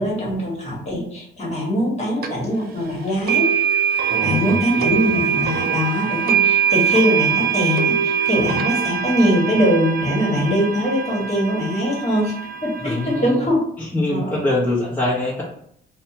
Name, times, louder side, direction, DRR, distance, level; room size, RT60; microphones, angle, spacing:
voice 1, 0.0-3.6 4.2-12.4 12.6-13.6 14.1-14.4, equal, 35° left, -4 dB, 1.3 m, -22 dB
sound 1, 2.2-2.3 3.3-13.3, right 8 dB, 50° right, 0.4 m, -22 dB
voice 2, 4.1-4.9 12.8-13.4 13.8-15.4, left 1 dB, 10° left, -7 dB, 0.9 m, -24 dB
2.7 x 2.1 x 2.7 m, 0.68 s
cardioid pair, 90°, 20 cm